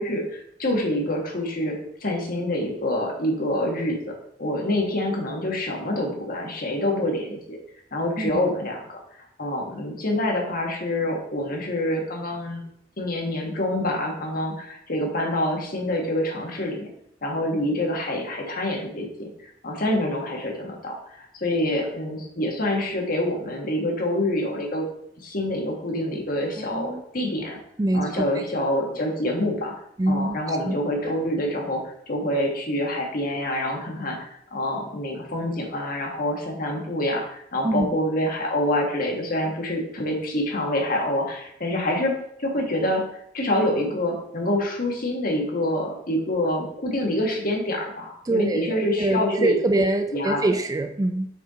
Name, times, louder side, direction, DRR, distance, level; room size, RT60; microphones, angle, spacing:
voice 1, 0.0-7.6 7.9-9.0 9.4-12.6 13.0-16.9 17.2-19.3 19.6-24.9 25.2-27.6 27.9-29.7 30.1-42.1 42.4-49.5 50.1-50.4, left 1 dB, 50° left, 0 dB, 1.6 m, -26 dB
voice 2, 26.6-27.0 27.8-28.4 30.0-30.8 37.6-37.9 48.2-51.3, right 2 dB, 20° right, 7 dB, 0.4 m, -24 dB
6.1 x 4.6 x 4.2 m, 0.72 s
head